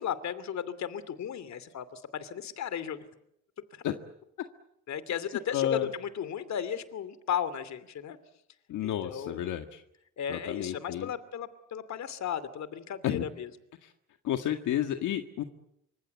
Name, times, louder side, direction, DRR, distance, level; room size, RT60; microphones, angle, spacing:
voice 1, 0.0-3.1 3.7-3.8 4.9-8.2 8.8-9.4 10.2-13.5, left 8 dB, 65° left, 15 dB, 2.8 m, -35 dB
voice 2, 5.5-5.9 8.7-9.8 10.3-11.1 13.0-13.2 14.2-15.4, left 11 dB, 80° left, 6 dB, 1.9 m, -31 dB
27.5 x 25.5 x 8.3 m, 0.78 s
cardioid pair, 90°, 30 cm